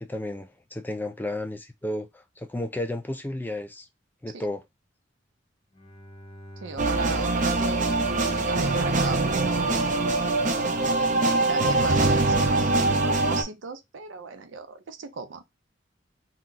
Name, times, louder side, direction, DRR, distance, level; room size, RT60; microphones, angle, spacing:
voice 1, 0.0-3.9 4.2-4.6, left 1 dB, 10° left, 0.4 m, -33 dB
Bowed string instrument, 5.7-10.5, equal, 30° left, 0.8 m, -44 dB
voice 2, 6.6-8.0 8.3-9.8 10.8-15.4, right 4 dB, 90° right, 0.6 m, -36 dB
sound 1, 6.8-13.4, right 2 dB, 45° right, 0.6 m, -23 dB
2.9 x 2.3 x 3.8 m
head